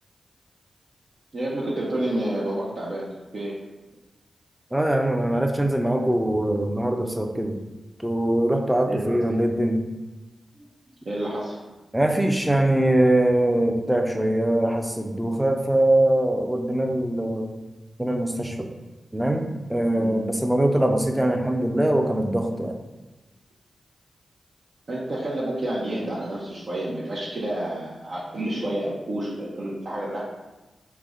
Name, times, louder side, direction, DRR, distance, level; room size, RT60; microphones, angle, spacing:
voice 1, 1.3-3.6 8.8-9.2 11.1-11.6 19.9-20.1 24.9-30.2, right 1 dB, 65° right, -6 dB, 0.6 m, -29 dB
voice 2, 4.7-7.6 8.0-9.8 11.9-17.5 18.0-18.7 19.1-22.8, right 1 dB, 10° right, 4 dB, 0.4 m, -22 dB
3.3 x 2.1 x 3.6 m, 1.1 s
cardioid pair, 45°, 0 cm